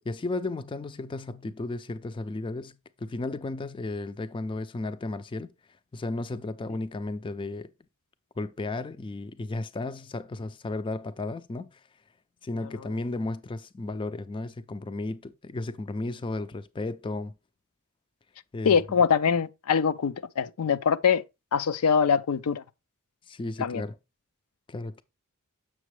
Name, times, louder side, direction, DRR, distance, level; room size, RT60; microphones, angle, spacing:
voice 1, 0.1-5.5 5.9-7.7 8.4-11.8 12.4-17.3 18.5-18.8 23.3-23.9 24.7-25.0, left 2 dB, 25° left, 0.4 m, -34 dB
voice 2, 18.6-21.2 21.5-22.6 23.6-23.8, left 6 dB, 85° left, 0.5 m, -23 dB
7.5 x 6.0 x 3.2 m
head